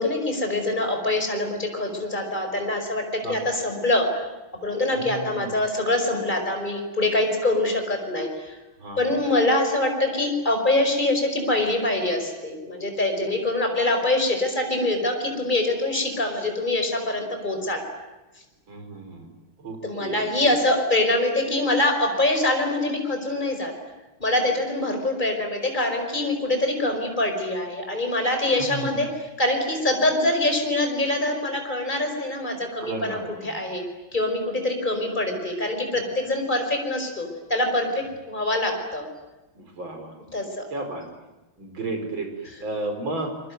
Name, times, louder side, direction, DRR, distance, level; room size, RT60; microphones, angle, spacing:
voice 1, 0.0-4.2 4.6-8.6 9.0-17.8 19.8-23.7 24.2-29.1 29.4-33.8 34.1-39.0 40.3-40.6, left 2 dB, 20° left, 4 dB, 5.4 m, -24 dB
voice 2, 4.9-5.5 8.8-9.2 18.7-19.3 19.6-20.2 28.6-28.9 32.8-33.6 39.6-40.1 40.7-41.0 41.6-42.3 42.6-43.3, right 2 dB, 70° right, 5 dB, 5.6 m, -33 dB
27.5 x 23.0 x 9.4 m, 1.1 s
omnidirectional pair, 2.3 m